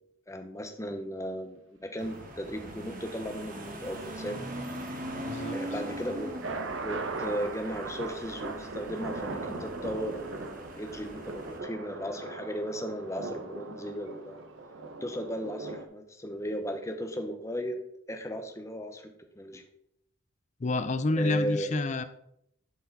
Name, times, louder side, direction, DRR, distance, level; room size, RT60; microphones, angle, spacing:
voice 1, 0.3-4.4 5.5-6.3 6.8-14.4 15.0-17.7 18.1-19.1 19.4-19.6 21.2-21.7, equal, 15° left, 5 dB, 0.9 m, -36 dB
sound 1, 2.0-11.6, right 1 dB, 40° right, 1.2 m, -41 dB
voice 2, 5.2-5.6 20.6-22.0, left 2 dB, 35° left, 12 dB, 0.4 m, -28 dB
sound 2, 5.7-15.8, right 3 dB, 65° right, 0.8 m, -39 dB
11.0 x 4.7 x 4.0 m, 0.77 s
head